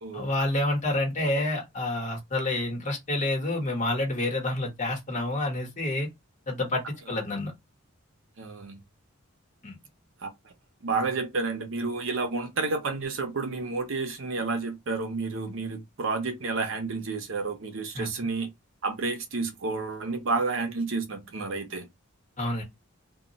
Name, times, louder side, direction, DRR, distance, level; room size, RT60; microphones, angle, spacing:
voice 1, 0.1-6.1 6.5-7.5 9.6-9.8 17.9-18.1 22.4-22.6, left 1 dB, 35° left, 1.0 m, -28 dB
voice 2, 8.4-8.8 10.2-10.3 10.8-18.5 18.8-21.9, right 3 dB, 65° right, 0.6 m, -30 dB
2.2 x 2.1 x 3.8 m
head